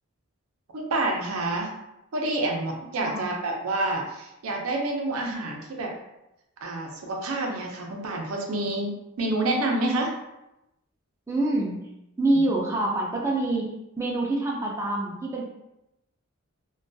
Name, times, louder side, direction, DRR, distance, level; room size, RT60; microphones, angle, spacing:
voice 1, 0.7-1.7 2.1-5.9 6.6-10.1 12.2-12.3, right 2 dB, 85° right, 1 dB, 0.5 m, -28 dB
voice 2, 11.3-11.8 12.2-13.7 14.0-15.4, right 2 dB, 15° right, -3 dB, 0.3 m, -26 dB
2.2 x 2.2 x 2.5 m, 0.90 s
head